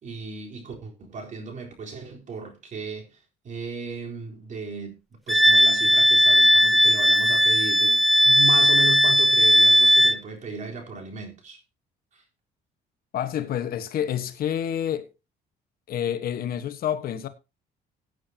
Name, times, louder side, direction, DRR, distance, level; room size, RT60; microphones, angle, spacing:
voice 1, 0.0-3.2 3.4-5.0 5.3-11.6 12.1-12.2, right 4 dB, 45° right, 4.0 m, -35 dB
Wind instrument woodwind instrument, 5.3-10.2, equal, ahead, 0.6 m, -17 dB
voice 2, 13.1-15.1 15.9-17.3, left 10 dB, 60° left, 1.3 m, -28 dB
17.0 x 9.2 x 2.9 m
cardioid pair, 110°, 17 cm